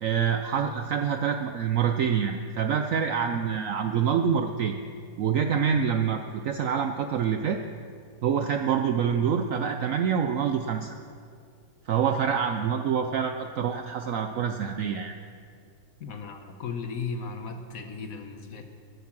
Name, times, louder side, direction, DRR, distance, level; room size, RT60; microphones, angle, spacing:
voice 1, 0.0-4.8 5.2-7.6 8.2-10.9 11.9-15.1, right 7 dB, 70° right, 6 dB, 0.8 m, -26 dB
voice 2, 16.0-18.6, left 5 dB, 60° left, 6 dB, 1.2 m, -36 dB
14.5 x 8.4 x 6.0 m, 2.3 s
omnidirectional pair, 1.9 m